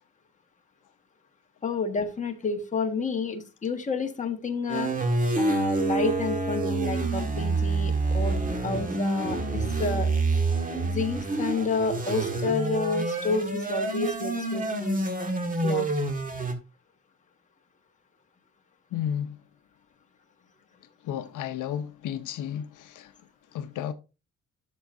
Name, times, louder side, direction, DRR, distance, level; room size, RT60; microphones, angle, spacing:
voice 1, 1.6-4.9 5.4-10.1 10.8-15.1 15.6-15.9, left 4 dB, 25° left, 1.6 m, -30 dB
sound 1, 4.7-16.5, right 3 dB, 25° right, 1.6 m, -27 dB
voice 2, 18.9-19.4 21.0-23.1 23.5-23.9, left 9 dB, 75° left, 0.8 m, -32 dB
12.0 x 7.0 x 2.6 m
cardioid pair, 145°, 31 cm